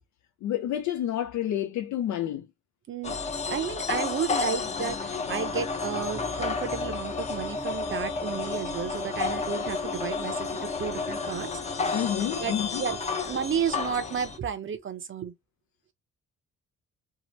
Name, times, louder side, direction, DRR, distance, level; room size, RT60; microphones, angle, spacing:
voice 1, 0.4-2.5 11.9-12.8, left 11 dB, 70° left, 0.5 m, -29 dB
sound 1, 3.0-14.4, left 4 dB, 20° left, 0.6 m, -31 dB
voice 2, 3.5-11.5 12.4-15.3, right 7 dB, 40° right, 0.6 m, -32 dB
2.8 x 2.0 x 3.0 m
cardioid pair, 90°, 30 cm